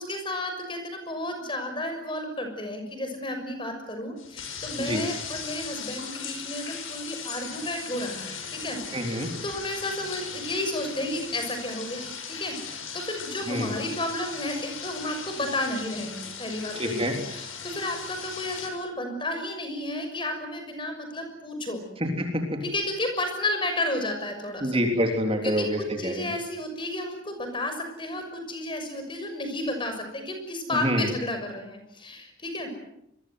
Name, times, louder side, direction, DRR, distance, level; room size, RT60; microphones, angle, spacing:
voice 1, 0.0-21.8 22.6-24.8 25.4-25.7 26.0-32.7, left 1 dB, 25° left, 6 dB, 6.3 m, -32 dB
sound 1, 4.2-18.7, left 6 dB, 90° left, 6.7 m, -38 dB
voice 2, 8.9-9.3 13.5-13.7 16.8-17.1 22.2-22.3 24.6-26.3 30.8-31.0, equal, 30° right, 3 dB, 3.5 m, -26 dB
28.0 x 23.0 x 8.0 m, 0.81 s
head